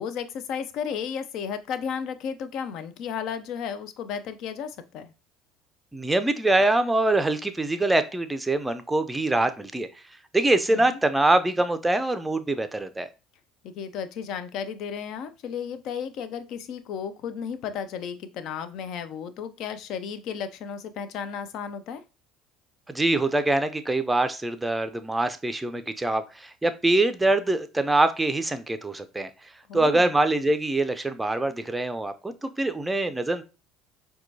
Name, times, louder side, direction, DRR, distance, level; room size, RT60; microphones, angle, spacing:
voice 1, 0.0-5.1 10.7-11.0 13.6-22.0 29.7-30.2, left 7 dB, 60° left, 11 dB, 0.4 m, -34 dB
voice 2, 5.9-9.9 10.3-13.1 22.9-29.3 29.7-33.4, right 2 dB, 10° right, 9 dB, 0.4 m, -24 dB
4.2 x 2.3 x 2.6 m, 0.30 s
hypercardioid pair, 70°, 0 cm